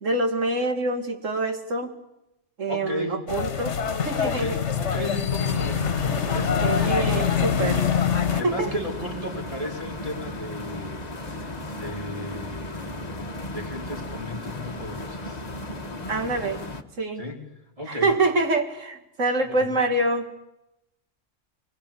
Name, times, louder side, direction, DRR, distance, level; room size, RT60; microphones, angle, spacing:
voice 1, 0.0-1.9 2.6-3.8 4.0-4.6 6.6-7.8 8.3-8.8 16.1-16.6 17.0-17.2 17.9-20.4, right 2 dB, 90° right, 6 dB, 2.5 m, -25 dB
voice 2, 2.7-3.2 4.2-7.0 7.5-7.9 8.3-11.1 11.7-15.4 17.2-17.4 17.8-18.1 19.6-19.8, left 1 dB, 30° right, 1 dB, 4.3 m, -35 dB
sound 1, 3.3-8.4, left 7 dB, 65° left, 1.5 m, -24 dB
sound 2, 5.4-16.8, left 1 dB, 35° left, 1.4 m, -35 dB
24.0 x 21.0 x 8.6 m, 0.88 s
omnidirectional pair, 1.3 m